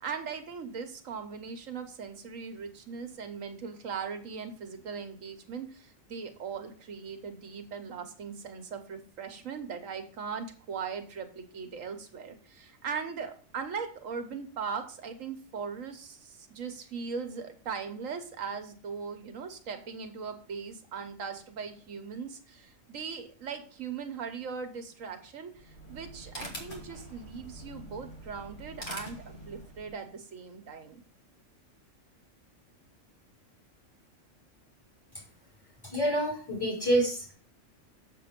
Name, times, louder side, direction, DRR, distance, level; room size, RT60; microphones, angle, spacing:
voice 1, 0.0-31.0, right 6 dB, 90° right, 7 dB, 1.5 m, -39 dB
sound 1, 25.5-30.0, equal, 40° left, 1.9 m, -44 dB
voice 2, 35.8-37.3, right 1 dB, 15° left, -5 dB, 3.9 m, -27 dB
6.9 x 6.8 x 5.1 m, 0.43 s
omnidirectional pair, 1.3 m